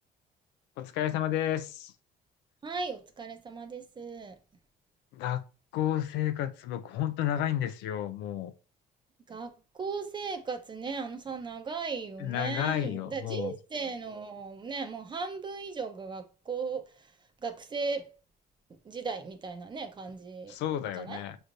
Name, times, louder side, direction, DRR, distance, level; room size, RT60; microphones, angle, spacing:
voice 1, 0.8-1.9 5.1-5.4 5.7-8.5 12.2-13.5 20.5-21.4, left 11 dB, 90° left, 0.5 m, -31 dB
voice 2, 2.6-4.4 9.3-17.1 17.4-18.0 18.8-20.6 21.0-21.2, right 4 dB, 25° right, 0.8 m, -37 dB
6.3 x 3.2 x 2.6 m
cardioid pair, 110°, 17 cm